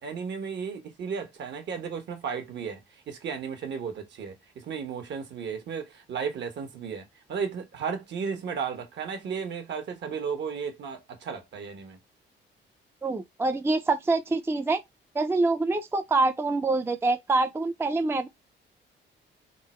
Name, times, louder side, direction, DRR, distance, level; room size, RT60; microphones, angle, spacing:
voice 1, 0.0-2.8 3.1-12.0, right 6 dB, 65° right, 1.2 m, -34 dB
voice 2, 13.0-14.8 15.1-18.3, right 3 dB, 10° right, 0.4 m, -25 dB
3.7 x 2.0 x 4.3 m
cardioid pair, 90°, 20 cm